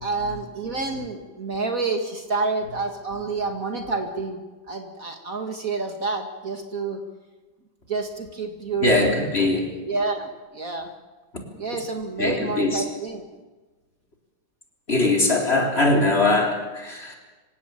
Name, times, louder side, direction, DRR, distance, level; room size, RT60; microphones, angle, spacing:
voice 1, 0.0-4.4 4.7-7.0 7.9-9.0 9.6-10.9 11.6-13.2, right 3 dB, 45° right, 4 dB, 2.4 m, -28 dB
voice 2, 8.8-9.7 12.2-12.8 14.9-17.2, left 2 dB, 30° left, 1 dB, 4.1 m, -21 dB
27.0 x 17.0 x 8.9 m, 1.3 s
omnidirectional pair, 2.1 m